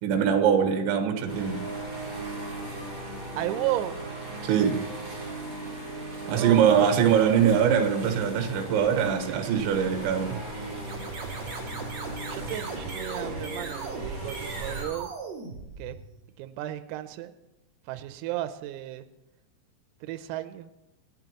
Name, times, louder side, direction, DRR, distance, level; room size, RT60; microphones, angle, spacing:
voice 1, 0.0-1.6 4.4-4.8 6.3-10.4, right 8 dB, 70° right, 5 dB, 3.4 m, -23 dB
sound 1, 1.3-14.8, right 2 dB, 20° right, 5.3 m, -37 dB
voice 2, 3.4-4.0 6.3-6.9 12.3-15.1 15.8-16.0 16.4-17.3 17.9-19.0 20.0-20.7, right 14 dB, 90° right, 10 dB, 3.4 m, -33 dB
sound 2, 10.8-16.2, right 3 dB, 45° right, 2.7 m, -38 dB
26.5 x 11.0 x 3.0 m, 0.97 s
omnidirectional pair, 6.0 m